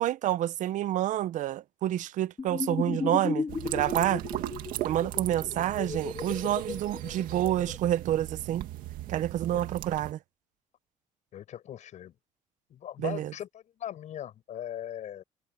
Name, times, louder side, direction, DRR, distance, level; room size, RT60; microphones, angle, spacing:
voice 1, 0.0-4.2 4.8-8.7 9.1-10.2 13.0-13.3, right 12 dB, 65° right, 0.8 m, -28 dB
sound 1, 2.4-7.8, left 5 dB, 30° left, 3.4 m, -35 dB
sound 2, 3.5-10.1, right 15 dB, 85° right, 2.2 m, -37 dB
voice 2, 11.3-12.2 12.7-15.2, left 11 dB, 60° left, 7.7 m, -40 dB
cardioid pair, 120°, 14 cm